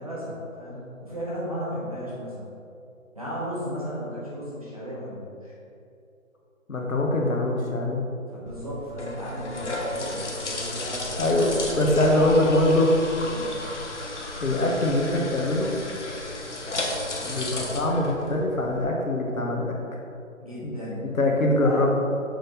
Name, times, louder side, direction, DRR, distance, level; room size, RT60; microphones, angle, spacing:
voice 1, 0.0-2.5 3.1-5.5 8.3-11.1 11.8-12.3 13.2-13.6 20.4-21.8, equal, 25° right, -9 dB, 1.1 m, -35 dB
voice 2, 6.7-8.1 11.2-12.9 14.4-15.7 17.2-19.7 20.6-20.7 21.1-22.0, left 1 dB, 75° left, 0 dB, 1.4 m, -23 dB
sound 1, 8.5-18.8, left 2 dB, 55° left, 1.0 m, -33 dB
6.5 x 4.3 x 4.0 m, 2.6 s
figure-of-eight pair, 175°, 41 cm